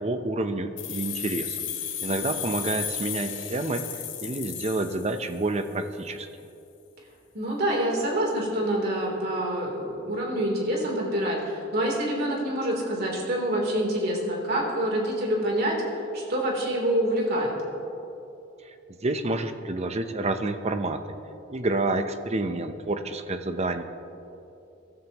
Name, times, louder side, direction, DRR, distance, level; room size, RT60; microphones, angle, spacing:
voice 1, 0.0-1.6 2.0-6.3 18.6-18.7 19.0-21.1 21.5-23.8, right 2 dB, 35° right, 8 dB, 0.8 m, -29 dB
sound 1, 0.8-5.6, left 9 dB, 80° left, 1.6 m, -34 dB
voice 2, 7.3-17.5, right 1 dB, 55° right, -2 dB, 3.5 m, -26 dB
23.5 x 13.0 x 3.0 m, 2.8 s
head